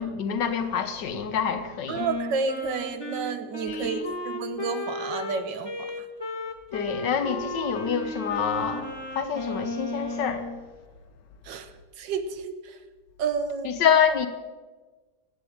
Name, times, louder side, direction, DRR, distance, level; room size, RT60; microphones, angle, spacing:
voice 1, 0.0-2.0 3.7-4.1 6.7-10.5 13.6-14.3, left 7 dB, 80° left, 1.7 m, -26 dB
Wind instrument woodwind instrument, 1.9-10.6, left 2 dB, 15° left, 1.2 m, -34 dB
voice 2, 1.9-5.9 11.4-11.7 12.0-12.8 13.2-13.8, right 5 dB, 85° right, 1.7 m, -31 dB
11.5 x 9.0 x 8.7 m
omnidirectional pair, 1.9 m